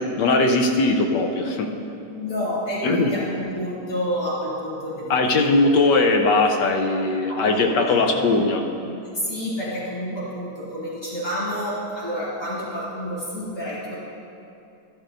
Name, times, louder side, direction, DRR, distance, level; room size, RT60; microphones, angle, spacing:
voice 1, 0.0-1.7 2.8-3.1 5.1-8.6 8.9-9.0, left 3 dB, 65° left, 3 dB, 1.2 m, -20 dB
voice 2, 2.1-5.5 7.3-8.3 9.1-13.9, equal, 10° left, -9 dB, 2.6 m, -29 dB
13.5 x 11.5 x 2.6 m, 2.6 s
omnidirectional pair, 2.2 m